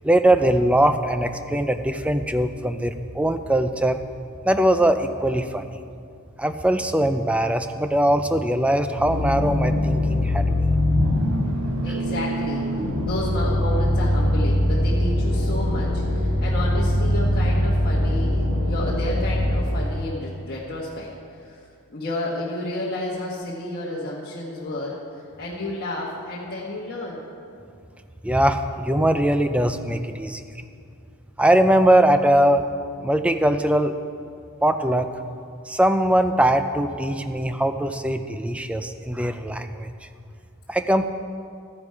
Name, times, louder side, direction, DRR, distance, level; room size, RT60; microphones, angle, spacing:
voice 1, 0.0-4.0 4.4-5.7 6.4-10.5 11.9-12.0 28.2-30.4 31.4-32.7 33.0-34.0 34.6-35.1 35.7-39.9 40.7-41.1, right 1 dB, 5° right, 8 dB, 0.4 m, -21 dB
sound 1, 9.0-19.6, left 1 dB, 60° right, 1.8 m, -22 dB
voice 2, 11.8-12.7 13.0-25.0 25.4-27.3, left 1 dB, 45° left, -6 dB, 1.4 m, -31 dB
13.5 x 10.0 x 4.8 m, 2.4 s
head